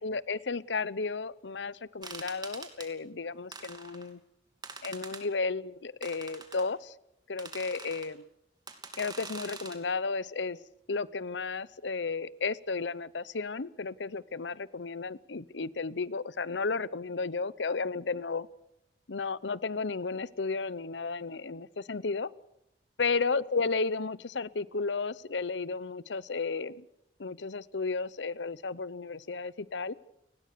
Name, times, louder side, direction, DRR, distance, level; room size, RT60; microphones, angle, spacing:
voice 1, 0.0-4.2 4.8-6.9 7.3-8.2 9.0-10.6 10.9-18.5 19.1-22.3 23.0-26.8 27.2-30.0, left 4 dB, 90° left, 19 dB, 0.8 m, -33 dB
sound 1, 2.0-2.9 3.5-4.1 4.6-5.2 6.0-6.7 7.4-8.1 8.7-9.8, right 4 dB, 25° right, 2.9 m, -44 dB
30.0 x 20.0 x 6.8 m, 0.81 s
head